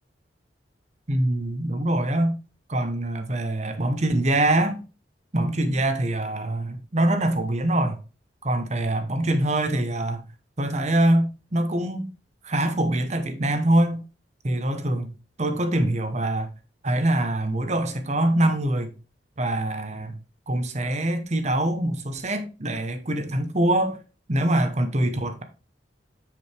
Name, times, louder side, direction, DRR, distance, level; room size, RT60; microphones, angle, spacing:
voice 1, 1.1-2.3 2.7-4.8 5.3-8.0 8.4-10.2 10.6-12.1 12.4-14.0 14.4-15.1 15.4-16.5 16.8-18.9 19.4-20.1 20.5-24.0 24.3-25.4, right 1 dB, 40° right, 1.1 m, -24 dB
9.6 x 5.2 x 3.4 m
head